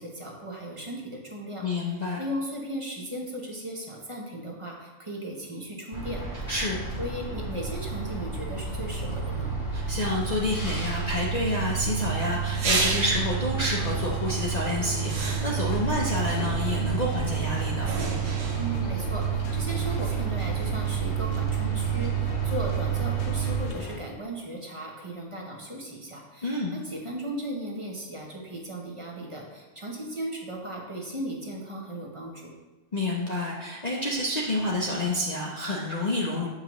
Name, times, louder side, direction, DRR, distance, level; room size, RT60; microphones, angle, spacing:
voice 1, 0.0-1.7 2.2-6.2 7.0-9.5 18.6-32.5, right 1 dB, 30° right, -1 dB, 0.8 m, -36 dB
voice 2, 1.6-2.2 6.5-6.8 9.7-17.9 26.4-26.8 32.9-36.5, left 1 dB, 40° left, -3 dB, 0.7 m, -29 dB
sound 1, 5.9-23.6, right 7 dB, 15° left, 1.1 m, -30 dB
sound 2, 12.5-13.4 14.3-14.5 15.0-15.8 16.3-16.9 17.9-18.9 20.0-20.1, right 3 dB, 75° right, 1.2 m, -31 dB
sound 3, 13.5-24.0, left 2 dB, 85° left, 1.1 m, -37 dB
7.3 x 5.3 x 3.0 m, 1.2 s
omnidirectional pair, 1.3 m